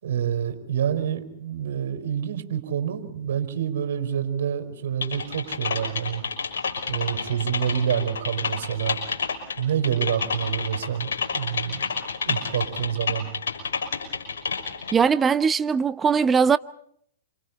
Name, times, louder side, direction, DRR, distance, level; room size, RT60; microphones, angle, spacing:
voice 1, 0.0-6.2 6.9-9.0 9.6-11.9 12.2-13.3, right 9 dB, 65° right, 5.1 m, -27 dB
Typing, 5.0-14.9, left 5 dB, 75° left, 6.1 m, -30 dB
voice 2, 14.9-16.6, right 6 dB, 20° right, 1.0 m, -20 dB
29.5 x 27.5 x 4.3 m
hypercardioid pair, 115°, 0 cm